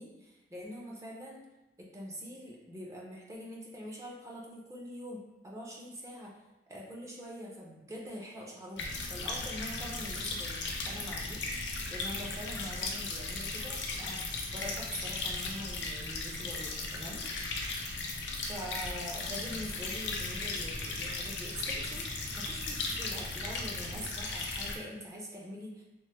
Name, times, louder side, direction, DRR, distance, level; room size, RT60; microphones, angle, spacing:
voice 1, 0.0-1.4 1.8-6.4 6.7-14.2 14.5-17.2 18.4-22.1 22.3-25.8, equal, 15° right, -3 dB, 0.5 m, -44 dB
sound 1, 8.8-24.8, left 3 dB, 90° left, 0.5 m, -36 dB
2.9 x 2.1 x 3.3 m, 0.98 s
head